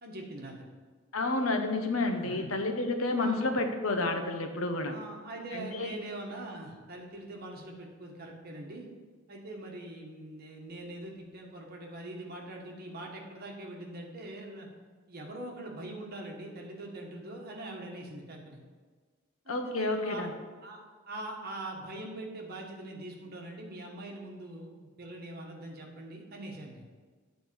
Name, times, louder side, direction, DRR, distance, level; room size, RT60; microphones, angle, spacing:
voice 1, 0.0-0.5 1.9-2.4 3.2-3.4 4.9-8.9 9.3-14.7 15.1-18.6 19.4-20.3 20.6-26.9, right 1 dB, 50° right, 0 dB, 1.5 m, -43 dB
voice 2, 1.1-4.9 5.5-5.9 19.5-20.3, left 2 dB, 80° left, 5 dB, 1.0 m, -30 dB
9.4 x 4.2 x 7.0 m, 1.4 s
head